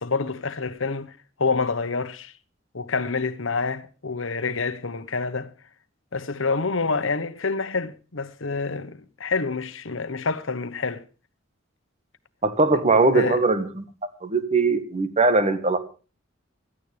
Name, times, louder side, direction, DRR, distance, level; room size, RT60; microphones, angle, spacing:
voice 1, 0.0-2.3 2.7-5.5 6.1-11.0 12.7-12.9 13.1-13.4, left 4 dB, 70° left, 1.1 m, -27 dB
voice 2, 12.4-13.6 14.2-15.8, right 3 dB, 35° right, 1.6 m, -20 dB
16.5 x 13.5 x 3.4 m
head